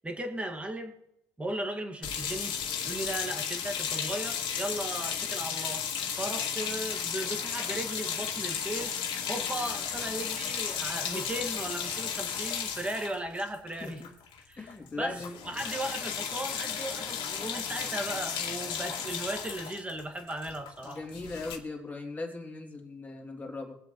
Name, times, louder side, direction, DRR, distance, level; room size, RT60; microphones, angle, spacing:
voice 1, 0.0-0.9 1.4-2.6 2.8-5.9 6.1-14.0 14.5-14.7 15.0-21.0, right 1 dB, 10° right, 4 dB, 1.9 m, -36 dB
sound 1, 2.0-14.4 14.7-14.9 15.1-21.6, left 7 dB, 55° left, 2.2 m, -34 dB
voice 2, 14.6-15.3 20.8-23.8, left 3 dB, 15° left, 1 dB, 2.8 m, -39 dB
22.5 x 7.9 x 3.1 m, 0.80 s
cardioid pair, 110°, 10 cm